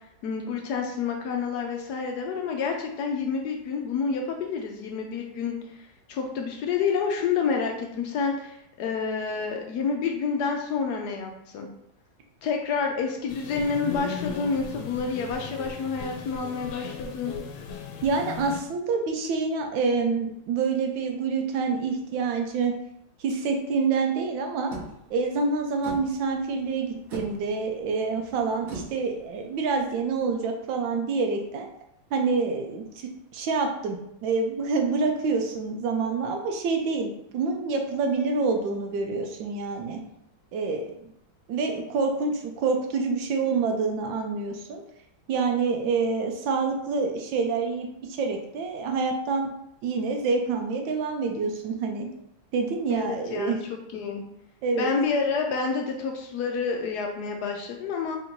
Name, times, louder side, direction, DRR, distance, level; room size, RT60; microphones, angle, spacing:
voice 1, 0.2-11.7 12.4-17.3 52.9-54.2 54.8-58.2, left 5 dB, 70° left, 2 dB, 1.0 m, -29 dB
sound 1, 13.3-18.6, left 6 dB, 90° left, 1.4 m, -37 dB
voice 2, 18.0-22.7 23.2-24.7 25.1-31.7 32.1-40.0 40.5-41.1 41.5-44.8 45.3-49.5 49.8-52.1 52.5-53.6 54.6-54.9, right 4 dB, 80° right, 3 dB, 1.3 m, -27 dB
sound 2, 24.7-30.3, right 3 dB, 55° right, 1.3 m, -43 dB
3.7 x 2.5 x 4.3 m, 0.77 s
omnidirectional pair, 2.0 m